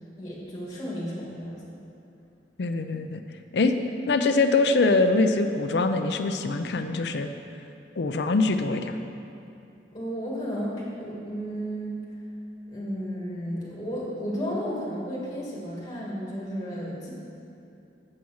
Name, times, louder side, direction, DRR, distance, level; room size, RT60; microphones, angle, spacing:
voice 1, 0.2-1.6 9.9-12.0 12.7-17.1, equal, 20° left, -6 dB, 2.1 m, -33 dB
voice 2, 2.6-3.2 3.5-3.7 4.1-7.3 8.0-9.0, left 3 dB, 70° left, 8 dB, 0.5 m, -23 dB
7.5 x 7.0 x 6.3 m, 2.6 s
head